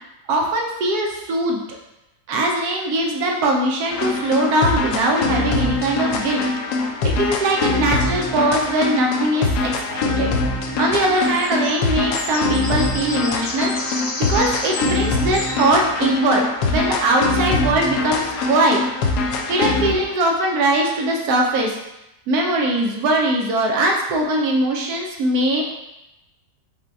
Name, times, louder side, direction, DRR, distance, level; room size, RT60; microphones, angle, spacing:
voice 1, 0.3-1.8 2.3-6.4 7.2-10.3 10.8-13.7 14.3-18.8 19.5-21.8 22.3-25.7, right 1 dB, 70° right, 0 dB, 1.0 m, -21 dB
sound 1, 3.9-20.0, left 3 dB, 75° left, 1.1 m, -23 dB
sound 2, 10.8-15.7, left 2 dB, 50° left, 1.1 m, -32 dB
4.9 x 2.2 x 4.6 m, 0.93 s
omnidirectional pair, 1.8 m